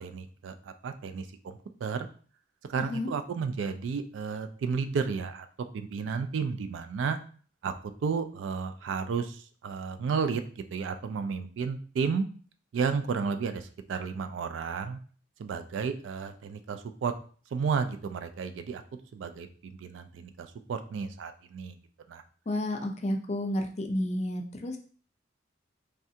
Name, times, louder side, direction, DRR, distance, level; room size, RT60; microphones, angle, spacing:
voice 1, 0.0-2.1 2.7-5.5 5.7-7.2 7.6-7.7 8.0-12.3 12.7-15.0 15.4-17.1 17.5-18.8 19.1-21.8 22.1-22.2, right 5 dB, 75° right, 9 dB, 0.3 m, -32 dB
voice 2, 22.5-24.8, left 1 dB, 35° left, 3 dB, 0.5 m, -31 dB
3.3 x 2.4 x 2.7 m, 0.43 s
head